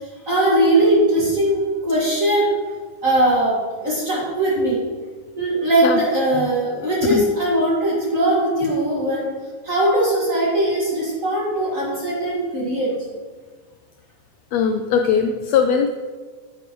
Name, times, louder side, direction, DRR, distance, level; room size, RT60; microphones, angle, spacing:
voice 1, 0.3-2.5 3.0-4.8 5.4-9.2 9.6-12.9, right 1 dB, 30° right, -6 dB, 1.8 m, -20 dB
voice 2, 14.5-15.9, left 6 dB, 90° left, 6 dB, 1.5 m, -19 dB
9.8 x 8.4 x 3.1 m, 1.4 s
omnidirectional pair, 3.5 m